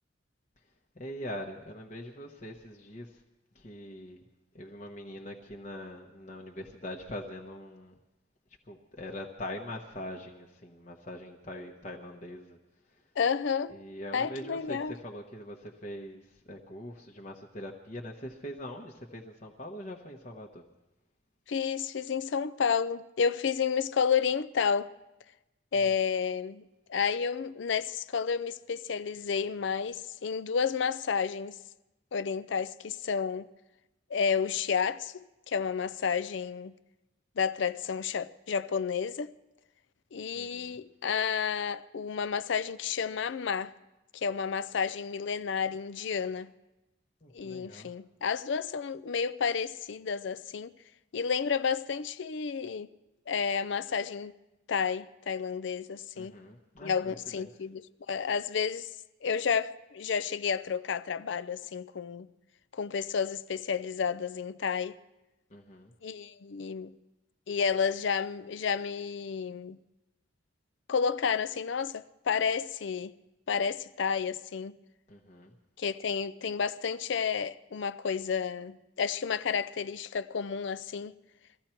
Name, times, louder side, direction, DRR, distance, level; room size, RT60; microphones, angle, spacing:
voice 1, 1.0-3.2 3.5-4.2 4.5-7.9 8.7-12.6 13.7-20.6 40.3-40.7 47.2-47.9 56.1-57.5 65.5-65.9 75.1-75.5, left 1 dB, 35° left, 1.0 m, -43 dB
voice 2, 13.2-13.8 14.1-14.9 21.5-24.9 25.7-26.6 26.9-31.6 32.1-33.5 34.1-36.7 37.4-39.3 40.1-43.7 44.1-46.5 47.3-50.7 51.1-52.9 53.3-54.3 54.7-56.4 56.8-58.9 59.2-62.3 62.7-65.0 66.0-66.9 67.5-69.8 70.9-73.1 73.5-74.8 75.8-81.1, left 6 dB, 60° left, 0.4 m, -31 dB
22.5 x 14.5 x 4.4 m
head